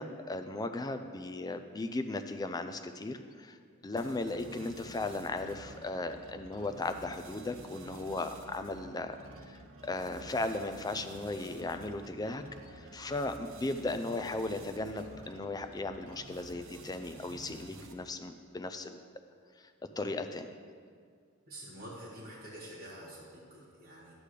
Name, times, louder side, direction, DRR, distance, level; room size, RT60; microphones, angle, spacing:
voice 1, 0.0-3.6 3.8-9.2 9.5-12.4 12.7-19.0 19.6-19.7 20.0-20.5, left 2 dB, 15° left, 8 dB, 0.4 m, -36 dB
sound 1, 4.0-18.2, right 2 dB, 60° right, 0.8 m, -51 dB
voice 2, 21.5-24.1, right 1 dB, 45° right, -7 dB, 1.7 m, -47 dB
11.5 x 8.4 x 3.3 m, 2.1 s
head